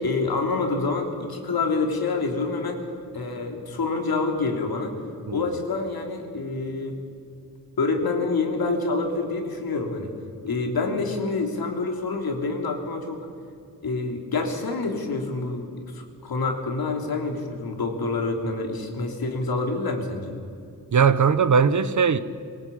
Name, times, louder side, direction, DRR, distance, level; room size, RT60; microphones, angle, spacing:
voice 1, 0.0-2.8 3.1-4.9 5.3-7.0 7.8-10.1 10.4-13.2 13.8-20.4, left 3 dB, 80° left, 3.4 m, -27 dB
voice 2, 20.9-22.2, right 6 dB, 55° right, 1.0 m, -19 dB
24.5 x 18.0 x 8.7 m
wide cardioid pair, 135°, 36 cm